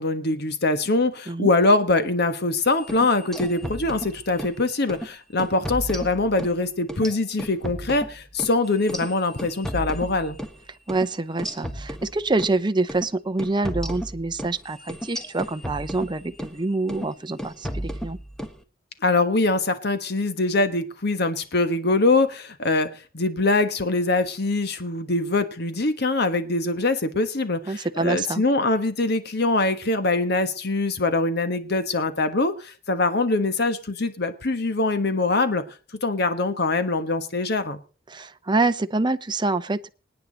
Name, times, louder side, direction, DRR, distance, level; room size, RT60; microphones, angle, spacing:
voice 1, 0.0-10.4 19.0-35.6 36.0-37.8, left 2 dB, 60° left, 10 dB, 1.3 m, -23 dB
sound 1, 2.8-4.6 4.9-5.1 5.4-6.6 6.9-10.6 10.9-11.1 11.4-12.6 12.9-13.1 13.4-16.6 16.9-17.1 17.4-18.6, equal, 5° left, 1.3 m, -34 dB
voice 2, 10.9-18.2 27.7-28.4 38.1-39.9, right 3 dB, 25° right, 9 dB, 0.7 m, -26 dB
25.5 x 9.4 x 4.1 m, 0.37 s
head